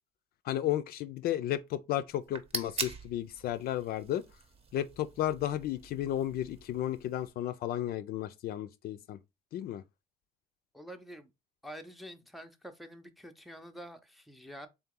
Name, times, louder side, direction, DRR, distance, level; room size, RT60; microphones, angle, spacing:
voice 1, 0.5-4.2 4.7-9.2 9.5-9.8, left 12 dB, 65° left, 0.4 m, -33 dB
sound 1, 2.1-7.3, right 4 dB, 35° right, 0.8 m, -43 dB
voice 2, 10.7-11.3 11.6-14.7, equal, ahead, 0.5 m, -47 dB
3.8 x 2.9 x 3.6 m
cardioid pair, 110°, 17 cm